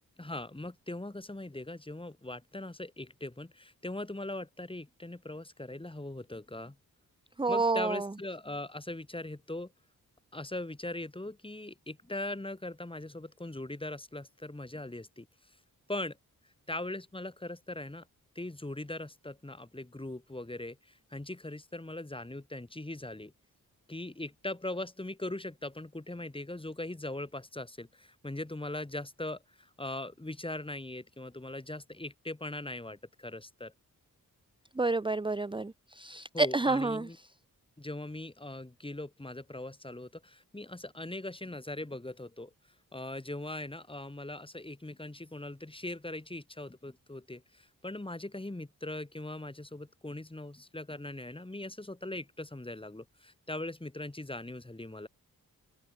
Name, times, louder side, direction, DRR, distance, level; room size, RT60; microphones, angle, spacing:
voice 1, 0.2-6.8 7.5-9.7 10.3-15.3 15.9-16.2 16.7-18.1 18.4-20.8 21.1-23.3 23.9-33.7 36.3-37.2 37.8-42.5 42.9-55.1, left 1 dB, 15° left, 2.7 m, -40 dB
voice 2, 7.4-8.1 34.8-37.1, right 3 dB, 15° right, 0.9 m, -29 dB
open air
cardioid pair, 60°, 36 cm